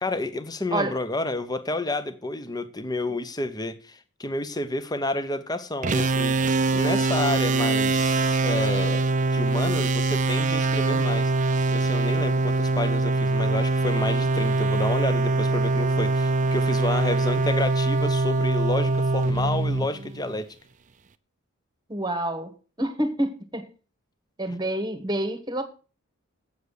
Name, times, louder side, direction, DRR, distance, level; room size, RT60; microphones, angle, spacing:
voice 1, 0.0-6.4 6.7-9.1 9.3-11.3 11.7-20.5, left 2 dB, 20° left, 0.8 m, -30 dB
sound 1, 5.8-20.4, right 2 dB, 35° right, 0.5 m, -23 dB
voice 2, 21.9-22.5 22.8-23.6 24.4-25.6, right 1 dB, 20° right, 1.3 m, -27 dB
8.2 x 7.3 x 6.5 m
head